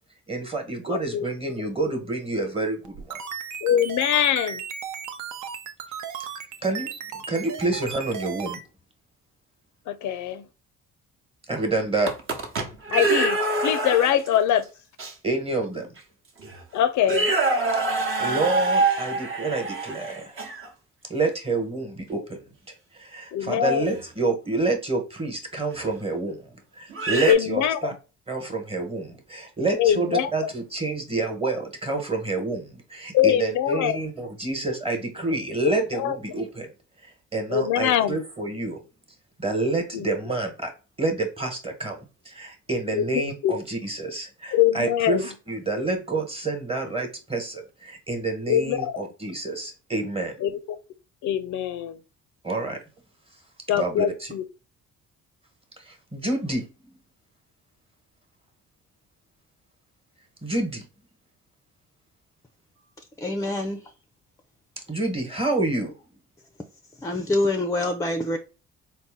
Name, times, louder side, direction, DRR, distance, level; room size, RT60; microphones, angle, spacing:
voice 1, 0.3-3.2 6.6-6.9 7.3-8.6 11.5-12.1 15.2-15.9 17.9-20.4 21.1-22.4 22.9-26.5 26.8-27.9 28.3-36.7 37.0-38.8 39.4-40.7 41.0-42.0 42.2-50.4 52.4-52.8 53.7-54.3 55.8-56.6 60.4-60.8 64.9-65.9, right 2 dB, 20° right, 1.1 m, -28 dB
sound 1, 2.9-8.6, right 7 dB, 75° right, 0.6 m, -35 dB
voice 2, 3.6-4.6 9.9-10.4 12.9-13.4 13.6-14.6 16.7-17.3 23.3-23.9 27.3-27.8 29.8-30.3 33.1-34.0 35.6-36.2 37.5-38.2 39.9-40.1 42.9-43.0 43.4-43.5 44.5-45.2 48.5-48.8 50.4-50.6 51.2-52.0 53.7-54.4, left 10 dB, 75° left, 0.5 m, -23 dB
sound 2, 11.9-14.4 15.0-15.1 16.0-16.1 16.4-16.6 17.0-20.7 23.9-24.0 25.8-25.9 26.9-27.3, right 3 dB, 45° right, 0.9 m, -25 dB
voice 3, 63.2-63.8 67.0-68.4, left 2 dB, 10° left, 0.4 m, -25 dB
4.0 x 2.1 x 3.5 m
cardioid pair, 90°, 30 cm